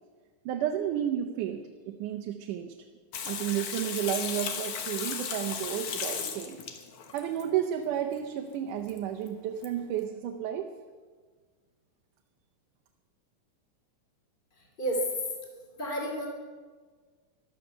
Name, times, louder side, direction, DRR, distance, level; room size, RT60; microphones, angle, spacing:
voice 1, 0.5-2.7 3.3-6.6 7.1-10.7, right 10 dB, 90° right, 4 dB, 2.4 m, -32 dB
Water tap faucet / Sink (filling or washing), 3.1-7.4 8.9-9.0 9.3-9.4 9.6-9.7, left 7 dB, 70° left, 2.6 m, -35 dB
voice 2, 14.5-15.1 15.8-16.3, right 1 dB, 15° left, 0 dB, 2.6 m, -31 dB
14.0 x 12.0 x 6.8 m, 1.5 s
omnidirectional pair, 3.5 m